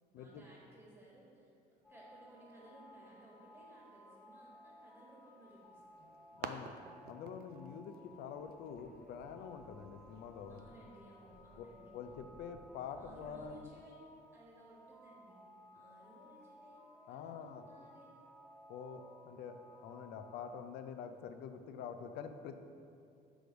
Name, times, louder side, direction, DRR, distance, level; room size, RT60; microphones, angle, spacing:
voice 1, 0.1-6.1 10.5-11.9 13.0-13.9 14.3-15.4 15.7-18.1, right 1 dB, 10° right, -5 dB, 1.3 m, -59 dB
sound 1, 1.8-20.7, left 1 dB, 5° left, 0.8 m, -59 dB
sound 2, 5.5-10.6, right 7 dB, 65° right, 0.4 m, -52 dB
voice 2, 6.4-6.7 7.0-10.6 11.6-13.7 17.1-17.7 18.7-22.7, left 7 dB, 80° left, 8 dB, 0.5 m, -47 dB
sound 3, 8.3-13.7, right 2 dB, 45° right, 1.2 m, -63 dB
6.2 x 3.4 x 5.1 m, 2.5 s
cardioid pair, 110°, 17 cm